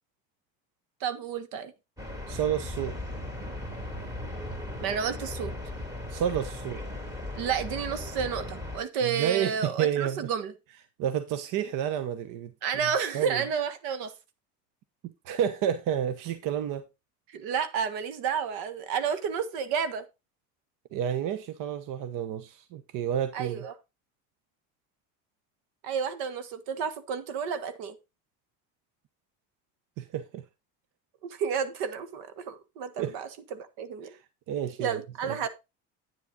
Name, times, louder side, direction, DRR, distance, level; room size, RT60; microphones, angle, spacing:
voice 1, 1.0-1.7 4.8-5.5 7.4-10.5 12.6-14.1 17.3-20.0 23.3-23.7 25.8-28.0 31.2-34.1 34.8-35.5, right 7 dB, 80° right, 1.5 m, -31 dB
sound 1, 2.0-8.8, left 1 dB, 10° right, 2.6 m, -37 dB
voice 2, 2.3-3.0 6.1-6.8 9.0-10.3 11.0-12.5 12.8-13.4 15.0-16.8 20.9-23.6 30.0-30.4 33.0-33.1 34.0-34.2 34.5-35.4, right 9 dB, 60° right, 1.0 m, -30 dB
9.4 x 7.3 x 3.8 m
cardioid pair, 135°, 36 cm